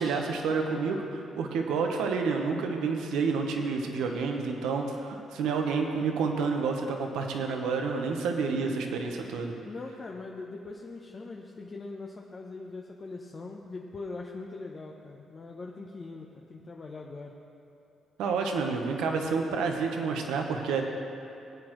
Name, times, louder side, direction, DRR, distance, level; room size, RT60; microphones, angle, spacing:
voice 1, 0.0-9.5 18.2-20.8, right 5 dB, 90° right, 3 dB, 1.0 m, -29 dB
voice 2, 9.6-17.4, left 3 dB, 35° left, -1 dB, 0.8 m, -41 dB
18.5 x 8.7 x 3.1 m, 2.8 s
cardioid pair, 90°, 0 cm